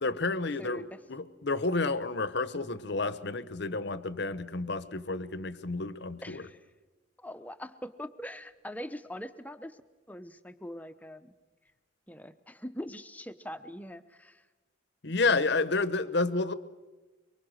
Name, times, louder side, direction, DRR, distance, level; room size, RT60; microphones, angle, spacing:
voice 1, 0.0-6.4 15.0-16.6, left 3 dB, 55° left, 15 dB, 0.9 m, -30 dB
voice 2, 0.6-1.0 6.2-6.7 7.2-9.8 10.1-11.3 12.1-14.5, equal, 10° left, 11 dB, 0.8 m, -42 dB
24.5 x 23.5 x 6.4 m, 1.2 s
head